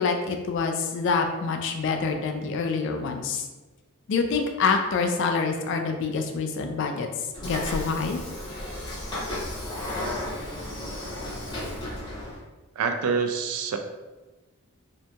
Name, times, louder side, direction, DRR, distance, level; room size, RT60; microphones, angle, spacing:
voice 1, 0.0-3.5 4.1-7.1 7.4-8.2, left 4 dB, 55° left, 4 dB, 0.3 m, -26 dB
Train / Sliding door, 7.3-12.4, left 1 dB, 20° left, 0.6 m, -33 dB
voice 2, 12.8-13.8, right 5 dB, 85° right, 5 dB, 0.3 m, -26 dB
2.8 x 2.5 x 2.2 m, 1.2 s
head